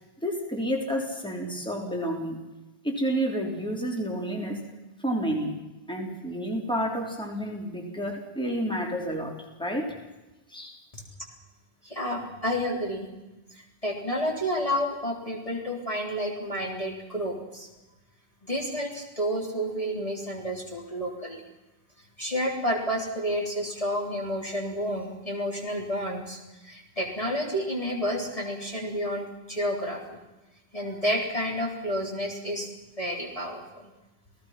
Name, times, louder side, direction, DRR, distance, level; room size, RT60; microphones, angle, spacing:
voice 1, 0.2-2.4 2.8-4.7 5.0-5.5 5.9-10.0 10.5-10.8, equal, 5° left, 0 dB, 3.8 m, -30 dB
voice 2, 11.8-13.1 13.5-17.7 18.4-21.4 22.2-30.2 30.7-32.7 33.0-33.9, equal, 35° left, -1 dB, 3.8 m, -30 dB
29.0 x 18.0 x 5.9 m, 1.1 s
omnidirectional pair, 1.1 m